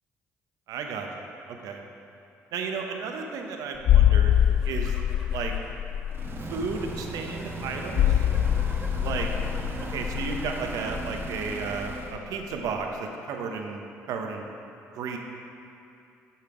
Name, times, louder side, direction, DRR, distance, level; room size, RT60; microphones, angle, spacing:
voice 1, 0.7-1.8 2.5-4.4 4.6-5.0 5.3-5.5 6.5-8.2 9.0-9.3 9.9-14.4 14.9-15.2, right 5 dB, 70° right, 3 dB, 0.8 m, -33 dB
sound 1, 3.8-12.3 12.5-12.7, left 10 dB, 60° left, 0.3 m, -25 dB
sound 2, 4.3-11.1 11.4-12.0, equal, 5° right, 1.7 m, -46 dB
sound 3, 6.1-12.2, right 2 dB, 40° right, 1.1 m, -37 dB
7.0 x 5.7 x 5.0 m, 2.7 s
supercardioid pair, 60°, 6 cm